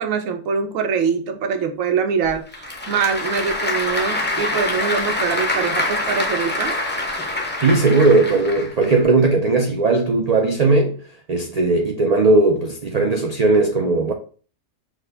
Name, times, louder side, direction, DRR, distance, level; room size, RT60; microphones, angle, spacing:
voice 1, 0.0-6.8, right 6 dB, 90° right, 1.1 m, -23 dB
Applause / Crowd, 2.3-9.0, left 2 dB, 15° left, 0.4 m, -25 dB
voice 2, 7.6-14.1, right 3 dB, 65° right, 0.4 m, -17 dB
6.0 x 2.1 x 3.3 m
omnidirectional pair, 1.3 m